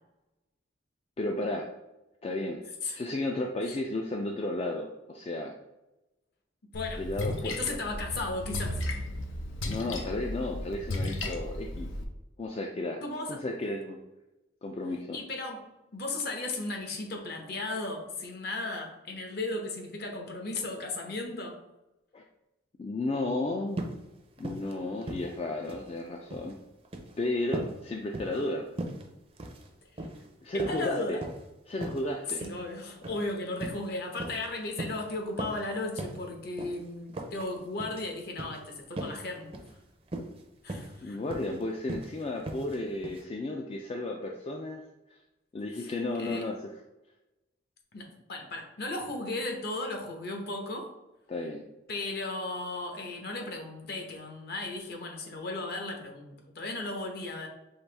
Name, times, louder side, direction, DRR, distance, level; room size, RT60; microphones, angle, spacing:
voice 1, 1.2-1.7 2.2-2.6 2.9-5.5 7.0-7.8 9.6-11.9 12.4-13.0 13.3-14.0 14.6-15.2 22.1-22.2 22.8-23.8 24.4-26.6 27.2-28.7 30.4-31.2 31.7-32.4 41.0-44.8 45.5-46.7 51.3-51.7, left 2 dB, 30° left, 2 dB, 0.3 m, -33 dB
Splash splatter, 6.7-12.0, left 1 dB, 90° left, 0.6 m, -35 dB
voice 2, 6.7-7.0 7.4-8.8 13.0-13.4 15.1-15.6 15.9-21.6 30.5-31.2 32.4-39.5 40.6-41.2 45.8-46.5 47.9-50.9 51.9-57.5, left 2 dB, 55° left, 2 dB, 0.8 m, -35 dB
sound 1, 23.7-24.0 24.4-24.7 25.0-25.9 26.2-26.5 26.9-27.1 27.5-27.8 28.1-28.5 28.8-29.0 29.4-29.7 30.0-30.2 30.6-31.4 31.8-32.0 32.4-32.6 33.0-33.2 33.6-33.8 34.2-34.5 34.8-35.0 35.4-35.7 36.0-36.2 36.6-36.8 37.1-37.5 37.8-38.0 38.4-38.6 39.0-39.2 39.5-39.7 40.1-40.4 40.7-41.0 41.3-41.6 41.9-42.1 42.5-42.8 43.0-43.2, right 1 dB, 30° right, 0.5 m, -38 dB
5.6 x 2.6 x 3.3 m, 0.99 s
head